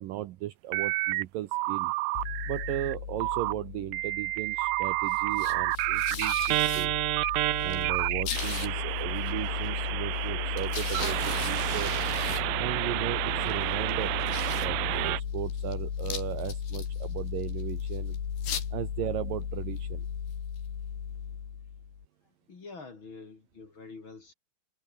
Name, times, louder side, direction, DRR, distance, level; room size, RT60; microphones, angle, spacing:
voice 1, 0.0-1.9 2.5-6.9 7.6-12.0 12.6-14.2 14.6-18.2 18.7-20.1, right 14 dB, 70° right, 2.3 m, -36 dB
sound 1, 0.7-1.2 1.5-2.9 3.2-3.5 3.9-15.2, right 21 dB, 90° right, 2.0 m, -30 dB
sound 2, 2.2-22.1, left 8 dB, 85° left, 5.5 m, -35 dB
voice 2, 22.5-24.3, left 4 dB, 35° left, 3.2 m, -46 dB
omnidirectional pair, 4.6 m